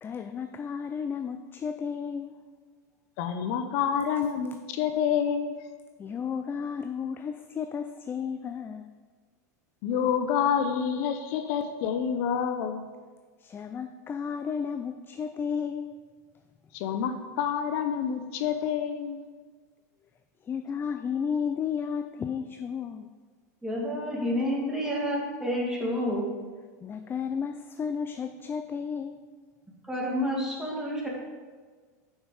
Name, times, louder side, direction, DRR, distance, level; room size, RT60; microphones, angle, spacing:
voice 1, 0.0-2.4 6.0-8.9 13.4-16.0 20.4-23.1 26.8-29.3, left 6 dB, 20° left, 7 dB, 0.4 m, -33 dB
voice 2, 3.2-5.5 9.8-12.8 16.7-19.2, left 8 dB, 60° left, 7 dB, 0.7 m, -28 dB
voice 3, 23.6-26.3 29.9-31.1, equal, 5° right, -4 dB, 2.2 m, -29 dB
6.5 x 5.9 x 4.9 m, 1.5 s
hypercardioid pair, 110°, 9 cm